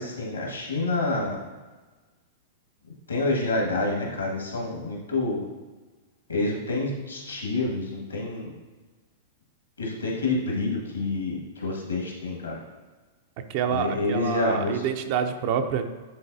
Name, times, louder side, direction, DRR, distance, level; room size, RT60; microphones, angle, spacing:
voice 1, 0.0-1.4 3.1-5.4 6.3-8.5 9.8-12.6 13.7-14.8, left 2 dB, 85° left, -2 dB, 1.8 m, -28 dB
voice 2, 13.5-15.9, right 7 dB, 50° right, 7 dB, 0.6 m, -27 dB
10.5 x 3.9 x 2.7 m, 1.3 s
figure-of-eight pair, 100°, 0 cm